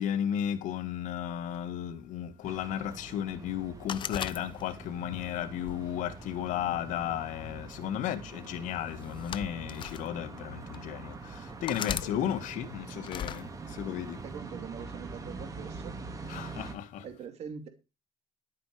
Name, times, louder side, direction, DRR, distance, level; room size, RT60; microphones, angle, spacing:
voice 1, 0.0-14.2 16.3-17.0, left 10 dB, 80° left, 2.0 m, -34 dB
sound 1, 2.4-16.7, right 4 dB, 25° right, 3.0 m, -44 dB
sound 2, 3.9-5.0 5.6-6.7 7.7-8.0 9.0-10.0 10.7-10.8 11.7-12.1 13.0-13.4, left 8 dB, 40° left, 0.8 m, -37 dB
voice 2, 14.2-15.9 17.0-17.7, right 7 dB, 55° right, 3.0 m, -43 dB
12.0 x 9.1 x 5.0 m
cardioid pair, 135°, 13 cm